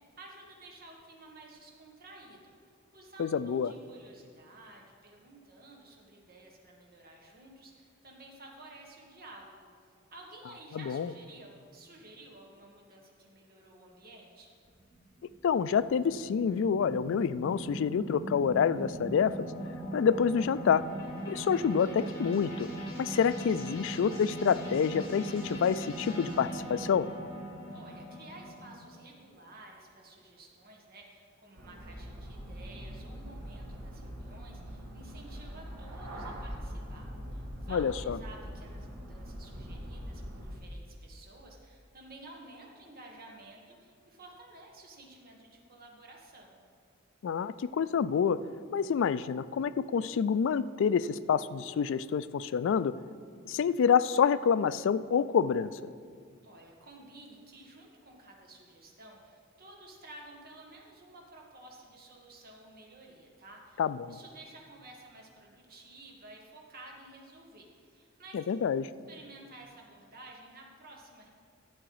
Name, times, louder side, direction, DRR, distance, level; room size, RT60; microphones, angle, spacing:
voice 1, 0.0-9.7 10.1-14.5 23.6-23.9 27.7-37.0 37.3-46.6 56.4-68.4 69.1-71.3, right 2 dB, 50° right, 0 dB, 1.6 m, -52 dB
voice 2, 3.2-3.7 10.7-11.1 15.4-19.5 19.9-20.8 21.3-22.7 23.0-27.1 37.7-38.2 47.2-48.4 48.7-52.9 53.5-55.7 63.8-64.2 68.3-68.9, left 7 dB, 65° left, 16 dB, 0.3 m, -27 dB
sound 1, 14.6-28.9, right 1 dB, 50° left, 2.9 m, -40 dB
sound 2, 31.6-40.5, equal, 80° right, 1.6 m, -42 dB
11.5 x 7.9 x 4.8 m, 2.1 s
head